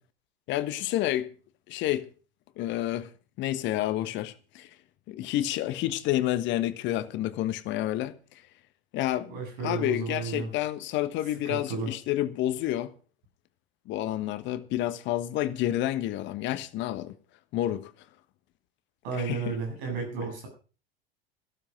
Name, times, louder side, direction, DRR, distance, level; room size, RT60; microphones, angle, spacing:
voice 1, 0.5-1.3 1.7-2.1 2.6-3.1 3.4-4.7 5.1-8.1 8.9-9.3 9.6-12.9 13.9-17.2 17.5-17.9 19.2-19.5, left 13 dB, 40° left, 1.3 m, -29 dB
voice 2, 9.2-10.5 11.4-11.9 19.0-20.5, right 5 dB, 55° right, 7.9 m, -33 dB
15.0 x 12.5 x 5.2 m
figure-of-eight pair, 80°, 30 cm